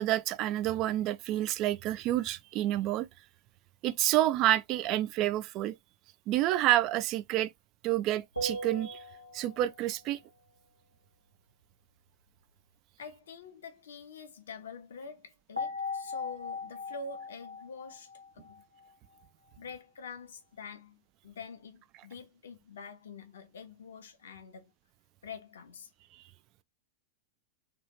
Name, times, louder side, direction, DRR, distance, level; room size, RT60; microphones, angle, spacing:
voice 1, 0.0-3.1 3.8-5.8 6.3-7.5 7.8-9.0 9.3-10.2, right 14 dB, 40° right, 0.3 m, -28 dB
sound 1, 8.3-9.9 15.6-18.9, left 2 dB, 90° right, 1.2 m, -39 dB
voice 2, 13.0-18.6 19.6-24.7 25.2-25.9, left 4 dB, 65° left, 0.9 m, -46 dB
3.4 x 2.5 x 2.9 m
figure-of-eight pair, 90°, 0 cm